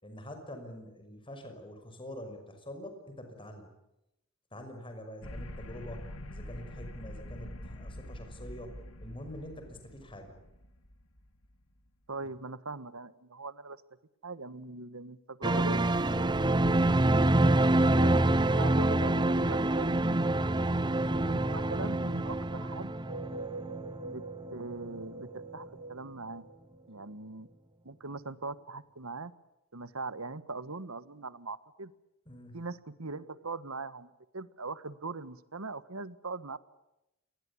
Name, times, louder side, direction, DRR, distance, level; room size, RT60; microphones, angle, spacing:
voice 1, 0.0-3.7 4.5-10.3 16.1-16.4 32.3-32.6, left 1 dB, 25° left, 6 dB, 5.9 m, -45 dB
sound 1, 5.2-11.7, left 1 dB, 80° left, 2.8 m, -45 dB
voice 2, 12.1-13.8 14.2-15.9 17.8-20.0 21.3-22.9 24.0-24.2 24.5-26.4 26.9-27.5 27.8-29.3 29.7-31.9 32.5-36.6, right 3 dB, 85° right, 15 dB, 1.5 m, -40 dB
sound 2, 15.4-24.6 24.9-25.0, right 1 dB, 20° right, 0.9 m, -26 dB
sound 3, 22.9-27.5, right 3 dB, 50° right, 1.0 m, -44 dB
28.5 x 21.5 x 8.6 m, 0.88 s
head